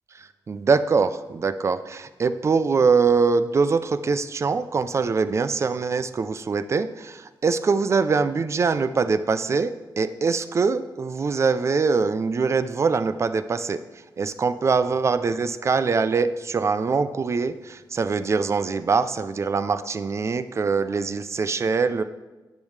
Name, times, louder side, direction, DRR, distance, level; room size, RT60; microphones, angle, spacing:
voice 1, 0.5-13.8 14.2-22.0, right 4 dB, 35° right, 12 dB, 0.4 m, -23 dB
10.5 x 8.1 x 3.2 m, 1.2 s
wide cardioid pair, 170°, 8 cm